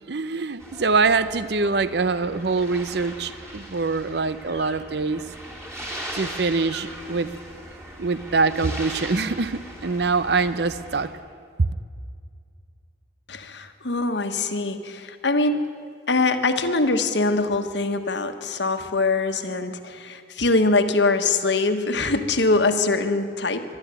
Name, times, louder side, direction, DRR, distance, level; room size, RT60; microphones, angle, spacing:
voice 1, 0.1-5.2 6.1-7.3 8.0-11.1 11.6-11.7, right 4 dB, 65° right, 14 dB, 0.7 m, -24 dB
sound 1, 0.6-11.1, right 1 dB, 15° right, 3.0 m, -39 dB
voice 2, 13.3-15.7 16.1-23.6, left 3 dB, 80° left, 7 dB, 1.4 m, -23 dB
23.5 x 12.0 x 9.1 m, 2.2 s
head